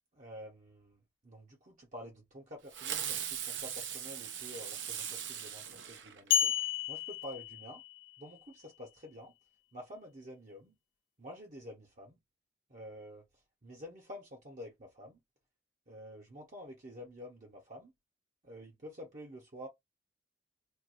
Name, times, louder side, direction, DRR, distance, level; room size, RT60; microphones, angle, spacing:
voice 1, 0.2-1.0 1.2-6.5 6.9-7.8 8.2-9.3 9.7-10.7 11.2-12.1 12.7-13.2 13.6-15.2 15.9-17.9 18.4-19.7, equal, 45° right, 0.9 m, -49 dB
Fireworks, 2.7-6.6, right 9 dB, 75° right, 0.8 m, -39 dB
sound 1, 6.3-8.1, left 10 dB, 70° left, 0.5 m, -32 dB
4.5 x 2.5 x 2.5 m
head